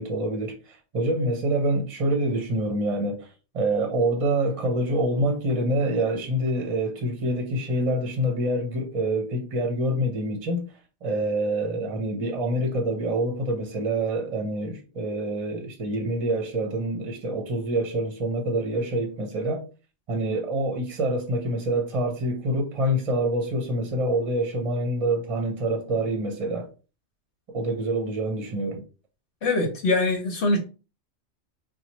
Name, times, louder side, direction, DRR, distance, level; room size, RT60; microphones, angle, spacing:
voice 1, 0.0-3.3 3.5-10.7 11.0-19.7 20.1-26.7 27.5-28.8, right 1 dB, 35° right, 0.7 m, -26 dB
voice 2, 29.4-30.6, left 2 dB, 75° left, 1.0 m, -23 dB
4.2 x 2.2 x 3.0 m
omnidirectional pair, 1.2 m